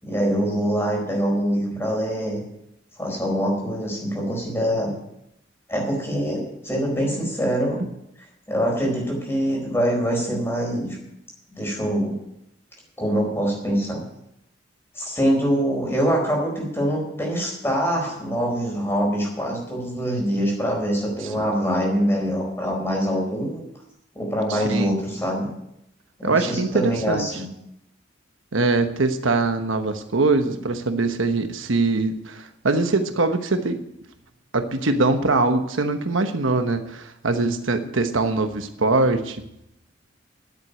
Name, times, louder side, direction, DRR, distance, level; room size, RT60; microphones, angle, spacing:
voice 1, 0.0-2.4 3.0-4.9 5.7-7.8 8.5-11.0 11.5-12.2 13.0-14.0 14.9-23.6 24.1-25.5 26.2-27.5, equal, 10° left, -1 dB, 4.4 m, -24 dB
voice 2, 24.5-25.2 26.2-27.3 28.5-33.8 34.5-39.4, right 3 dB, 85° right, 8 dB, 1.1 m, -22 dB
10.5 x 8.1 x 9.3 m, 0.81 s
head